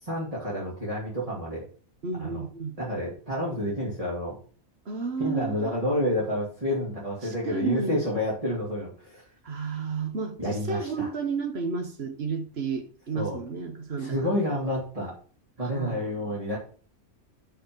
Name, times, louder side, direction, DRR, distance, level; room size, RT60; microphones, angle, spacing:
voice 1, 0.0-1.6 2.2-2.4 2.8-4.4 5.2-9.2 10.4-11.1 13.1-13.4 14.0-15.1 15.6-16.6, left 1 dB, 25° right, 2.7 m, -29 dB
voice 2, 2.0-2.7 4.9-5.7 7.2-8.0 9.4-14.3 15.6-16.4, right 5 dB, 50° right, 1.4 m, -32 dB
6.5 x 5.7 x 6.9 m
omnidirectional pair, 1.5 m